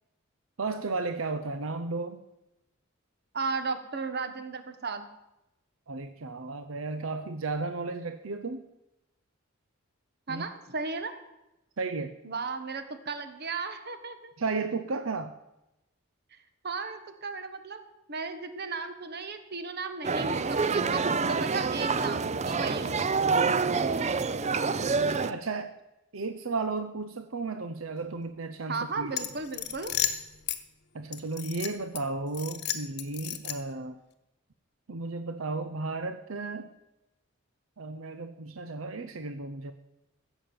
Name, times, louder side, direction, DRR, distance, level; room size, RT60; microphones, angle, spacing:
voice 1, 0.6-2.2 5.9-8.6 10.3-10.4 11.8-12.2 14.4-15.4 24.4-25.7 26.1-29.1 30.9-34.0 34.9-36.7 37.8-39.7, right 3 dB, 80° right, 9 dB, 0.8 m, -34 dB
voice 2, 3.3-5.1 10.3-11.1 12.2-14.3 16.6-17.8 18.1-21.0 21.3-23.5 28.7-29.9, right 4 dB, 55° right, 9 dB, 1.4 m, -35 dB
sound 1, 20.0-25.3, right 4 dB, 35° right, 0.6 m, -27 dB
sound 2, 29.1-30.6 31.1-32.0 32.3-33.8, left 10 dB, 55° left, 1.1 m, -33 dB
15.5 x 7.3 x 8.7 m, 0.94 s
head